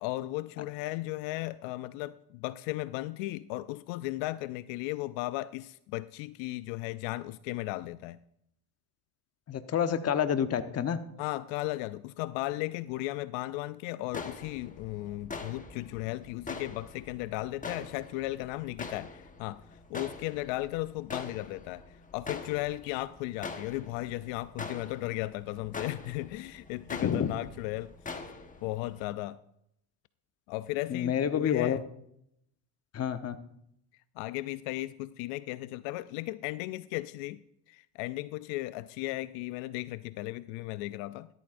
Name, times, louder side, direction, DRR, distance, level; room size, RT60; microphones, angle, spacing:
voice 1, 0.0-8.2 11.2-19.6 19.9-21.8 22.1-27.9 28.6-29.4 30.5-31.8 34.2-37.4 37.7-41.3, left 18 dB, 75° left, 16 dB, 0.5 m, -36 dB
voice 2, 9.5-11.0 27.0-27.3 30.9-31.8 32.9-33.3, left 8 dB, 35° left, 10 dB, 1.0 m, -28 dB
sound 1, 14.1-29.1, left 4 dB, 15° left, 1.2 m, -44 dB
14.5 x 13.0 x 2.6 m, 0.75 s
supercardioid pair, 110°, 45 cm